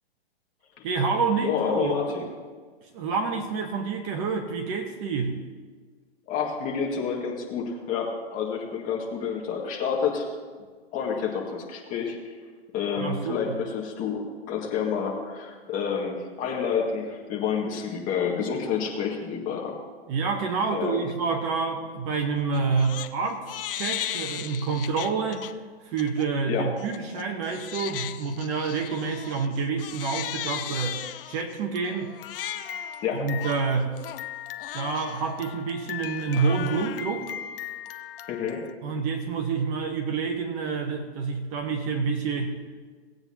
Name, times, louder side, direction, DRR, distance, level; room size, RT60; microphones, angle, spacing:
voice 1, 0.8-2.3 2.9-5.4 13.0-13.6 20.1-25.5 25.8-31.0 31.3-32.1 33.1-34.0 34.7-37.3 38.8-42.6, right 5 dB, 30° right, 4 dB, 1.0 m, -28 dB
voice 2, 1.4-2.2 6.3-10.3 10.9-12.4 12.7-19.7 20.7-21.1 26.5-26.7 33.0-33.3 38.3-38.6, left 6 dB, 25° left, -1 dB, 1.9 m, -29 dB
Crying sobbing, 22.5-23.1 23.5-25.5 26.0-26.3 26.8-38.7, left 11 dB, 55° left, 0.7 m, -37 dB
18.5 x 8.7 x 2.9 m, 1.5 s
hypercardioid pair, 150°, 33 cm